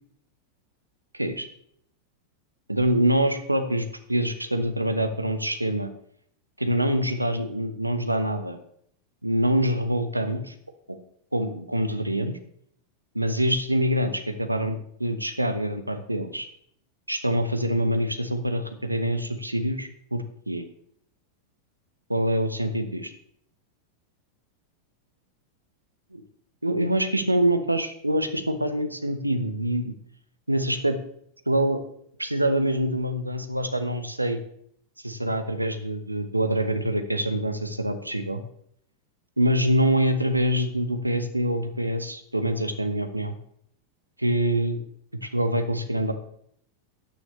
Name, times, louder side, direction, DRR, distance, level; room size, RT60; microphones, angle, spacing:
voice 1, 1.1-1.5 2.7-5.9 6.6-8.6 9.2-10.5 11.3-12.3 13.1-16.5 17.1-20.6 22.1-23.1 26.1-26.2 26.6-29.9 30.5-31.0 31.5-31.8 32.2-34.4 35.0-38.4 39.4-43.3 44.2-44.8 45.2-46.1, right 1 dB, 85° right, 8 dB, 1.0 m, -25 dB
13.5 x 9.5 x 3.2 m, 0.68 s
figure-of-eight pair, 90°, 0 cm